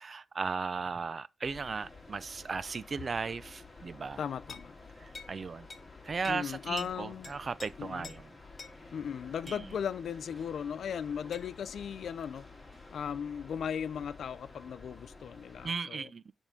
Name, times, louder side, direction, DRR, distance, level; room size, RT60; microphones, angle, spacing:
voice 1, 0.0-4.2 5.0-5.7 6.0-8.2 9.5-9.7 15.6-16.3, right 5 dB, 40° right, 0.4 m, -36 dB
sound 1, 1.4-15.7, left 3 dB, 20° left, 2.0 m, -52 dB
voice 2, 4.2-4.8 6.2-7.3 7.8-8.1 8.9-12.5 12.9-16.1, left 8 dB, 75° left, 0.4 m, -37 dB
sound 2, 4.5-4.7 5.1-5.4 5.7-5.9 6.2-6.5 6.8-6.9 7.2-7.7 8.0-8.2 8.6-8.8 9.5-9.6 11.3-11.5, left 4 dB, 40° left, 1.6 m, -47 dB
9.7 x 3.6 x 5.0 m
wide cardioid pair, 130°, 0 cm